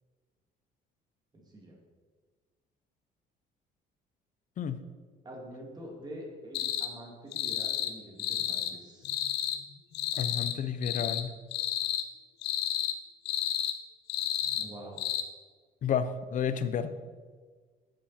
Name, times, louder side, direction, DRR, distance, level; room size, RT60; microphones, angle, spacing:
voice 1, 1.3-1.8 5.2-9.1 14.5-15.0, equal, 25° right, -1 dB, 2.6 m, -46 dB
sound 1, 6.5-6.9 7.3-7.9 8.2-8.7 9.0-9.6 9.9-10.6 10.8-11.2 11.5-12.0 12.4-12.9 13.3-13.8 14.1-14.7 15.0-15.2, left 11 dB, 85° left, 0.8 m, -31 dB
voice 2, 10.1-11.4 15.8-16.9, left 7 dB, 50° left, 11 dB, 0.7 m, -31 dB
10.5 x 7.2 x 4.4 m, 1.5 s
cardioid pair, 110°, 17 cm